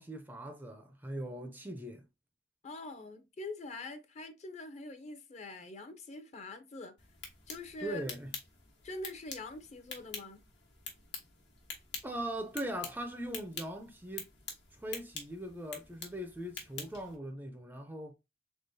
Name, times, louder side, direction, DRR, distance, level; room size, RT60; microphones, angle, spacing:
voice 1, 0.0-2.0 7.8-8.3 12.0-14.3 14.7-18.1, right 1 dB, 10° right, 0.4 m, -40 dB
voice 2, 2.6-7.0 7.5-8.0 8.8-10.4, left 2 dB, 40° left, 0.6 m, -44 dB
sound 1, 7.0-17.2, left 5 dB, 80° left, 1.2 m, -47 dB
3.7 x 3.4 x 2.6 m
head